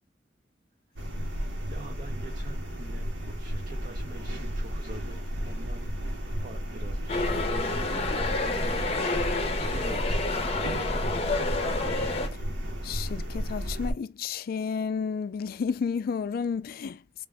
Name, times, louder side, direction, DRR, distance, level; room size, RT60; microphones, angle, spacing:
sound 1, 1.0-13.9, equal, 85° right, 1.1 m, -33 dB
voice 1, 1.7-5.9 6.4-8.0 8.6-10.6, right 2 dB, 45° right, 0.6 m, -46 dB
sound 2, 7.1-12.3, left 3 dB, 35° left, 0.7 m, -29 dB
voice 2, 12.8-17.3, left 6 dB, 55° left, 0.3 m, -31 dB
3.4 x 2.5 x 3.5 m
head